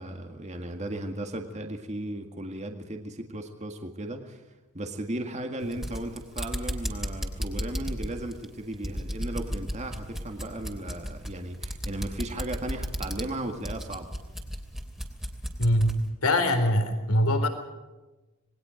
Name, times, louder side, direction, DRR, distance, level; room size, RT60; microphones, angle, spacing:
voice 1, 0.0-4.4 4.7-14.1, right 1 dB, 30° right, 4 dB, 1.9 m, -36 dB
sound 1, 5.6-16.0, equal, ahead, 2.9 m, -34 dB
voice 2, 15.6-15.9 16.2-17.5, left 1 dB, 80° left, 7 dB, 4.1 m, -22 dB
27.5 x 20.5 x 5.2 m, 1.1 s
head